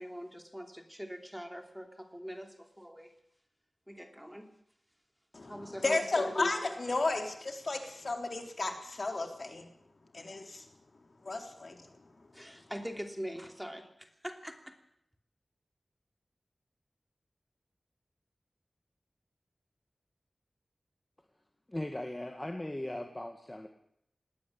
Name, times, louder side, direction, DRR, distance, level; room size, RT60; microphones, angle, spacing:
voice 1, 0.0-3.1 3.9-4.5 5.4-6.3 12.3-14.8, equal, 5° right, 5 dB, 2.9 m, -43 dB
voice 2, 5.3-9.6 10.1-10.7 11.2-11.9, left 3 dB, 55° left, 5 dB, 3.8 m, -33 dB
voice 3, 21.7-23.7, left 1 dB, 20° left, 5 dB, 1.9 m, -38 dB
19.5 x 17.0 x 8.6 m, 0.72 s
wide cardioid pair, 75°, 0 cm